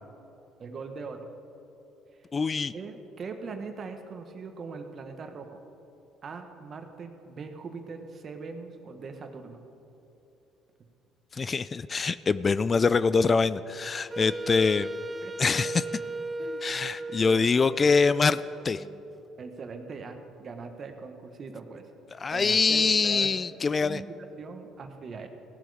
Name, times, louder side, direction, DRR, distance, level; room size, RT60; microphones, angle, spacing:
voice 1, 0.6-1.3 2.7-5.6 6.2-9.6 15.2-15.3 16.4-16.6 17.3-17.5 19.4-21.9 22.3-23.5 23.8-24.1 24.4-25.3, right 4 dB, 50° right, 6 dB, 1.3 m, -41 dB
voice 2, 2.3-2.7 11.3-14.9 15.4-15.8 16.6-18.4 18.6-18.8 22.1-24.0, left 4 dB, 35° left, 15 dB, 0.3 m, -24 dB
Wind instrument woodwind instrument, 14.1-19.0, right 2 dB, 25° right, 0.5 m, -37 dB
17.0 x 7.8 x 5.0 m, 2.9 s
supercardioid pair, 75°, 0 cm